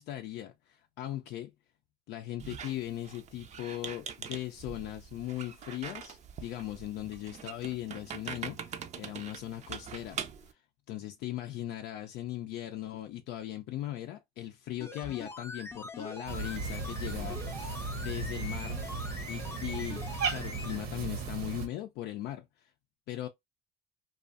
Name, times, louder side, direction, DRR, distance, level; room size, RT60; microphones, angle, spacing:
voice 1, 0.0-1.5 2.1-10.2 10.5-10.6 10.9-18.8 19.3-22.7 23.1-23.3, left 13 dB, 85° left, 0.4 m, -39 dB
Squeak, 2.4-10.5, right 7 dB, 45° right, 0.5 m, -43 dB
sound 1, 14.8-20.8 21.1-21.2, left 3 dB, 15° left, 0.5 m, -43 dB
Cat, 16.3-21.7, right 4 dB, 65° right, 0.9 m, -36 dB
2.4 x 2.3 x 2.5 m
cardioid pair, 110°, 17 cm